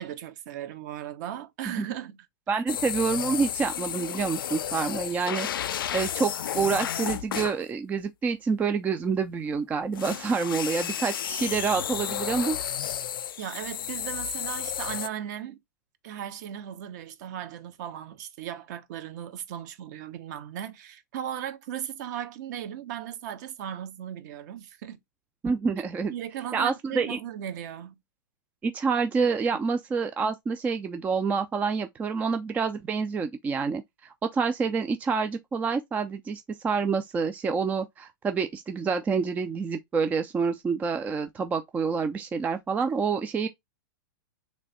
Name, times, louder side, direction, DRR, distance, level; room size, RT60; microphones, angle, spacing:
voice 1, 0.0-2.2 2.5-2.6 13.4-15.6 16.0-25.0 26.1-28.0 42.8-42.9, right 10 dB, 55° right, 0.9 m, -37 dB
voice 2, 2.5-12.6 25.4-26.1 26.5-27.2 28.6-43.5, right 5 dB, 15° right, 0.3 m, -27 dB
sound 1, 2.7-7.6 9.9-15.1, left 10 dB, 90° left, 0.4 m, -32 dB
3.4 x 3.1 x 3.9 m
hypercardioid pair, 130°, 11 cm